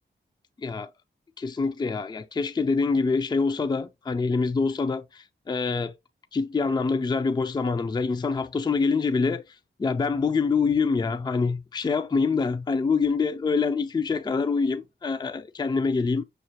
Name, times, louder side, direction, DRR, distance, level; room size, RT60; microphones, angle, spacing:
voice 1, 1.4-5.9 6.3-9.4 9.8-16.2, left 4 dB, 20° left, 0.4 m, -25 dB
6.5 x 2.3 x 2.8 m
wide cardioid pair, 135°, 20 cm